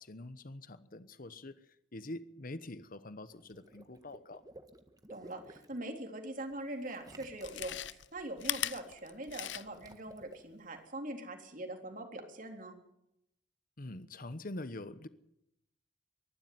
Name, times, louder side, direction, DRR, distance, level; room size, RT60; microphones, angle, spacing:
voice 1, 0.0-4.4 13.8-15.1, left 2 dB, 50° left, 14 dB, 1.1 m, -45 dB
Water / Liquid, 3.3-5.8 6.9-7.9 9.4-10.4, right 1 dB, 20° right, 1.5 m, -55 dB
voice 2, 5.1-12.8, right 1 dB, 50° right, 4 dB, 3.7 m, -42 dB
Chewing mastication, 6.5-6.6 7.3-9.9 10.3-10.4, left 12 dB, 85° left, 0.8 m, -38 dB
23.5 x 12.0 x 9.6 m, 0.80 s
head